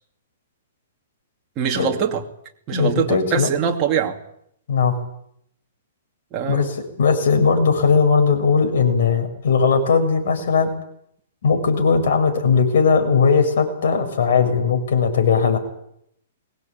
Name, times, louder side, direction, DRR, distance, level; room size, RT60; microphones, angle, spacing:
voice 1, 1.6-2.2 2.7-4.2 6.3-6.7, right 7 dB, 25° right, 2.6 m, -23 dB
voice 2, 2.7-3.5 4.7-5.0 6.5-10.7 11.4-15.6, left 5 dB, 65° left, 7.2 m, -18 dB
23.5 x 19.0 x 9.1 m
hypercardioid pair, 165°, 0 cm